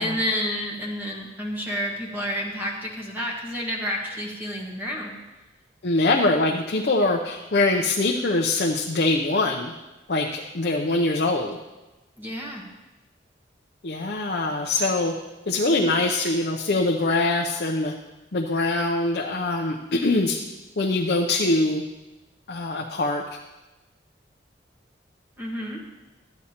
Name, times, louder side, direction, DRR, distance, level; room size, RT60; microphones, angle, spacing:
voice 1, 0.0-5.2 12.2-12.6 25.4-25.8, equal, 10° right, -3 dB, 1.4 m, -30 dB
voice 2, 5.8-9.7 10.1-11.6 13.8-15.1 15.5-17.9 18.3-20.4 20.8-21.8 22.5-23.4, left 2 dB, 55° left, 0 dB, 0.6 m, -23 dB
13.0 x 9.5 x 2.9 m, 1.1 s
head